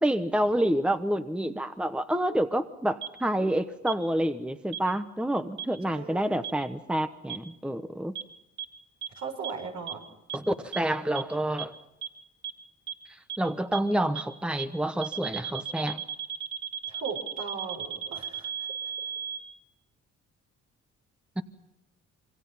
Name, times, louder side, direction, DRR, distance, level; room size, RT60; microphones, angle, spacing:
voice 1, 0.0-8.2 10.3-11.7 13.1-16.0 21.4-21.5, right 1 dB, 5° right, 9 dB, 1.1 m, -28 dB
sound 1, 3.0-3.1 3.9-4.0 4.7-4.8 5.6-5.7 6.4-6.5 7.3-7.4 8.2-8.3 8.6-8.7 9.0-9.1 9.4-9.5 9.9-10.0 10.3-10.4 10.7-10.8 11.2-11.3 11.6-11.7 12.0-12.1 12.4-12.5 12.9-13.0 13.3-13.4 13.7-13.8 14.2-14.3 14.6-14.7 15.0-19.4, right 9 dB, 35° right, 3.2 m, -34 dB
voice 2, 5.9-6.4 9.1-10.0 16.9-18.7, right 5 dB, 70° right, 2 dB, 6.6 m, -38 dB
26.5 x 24.5 x 5.7 m, 0.92 s
cardioid pair, 90°, 30 cm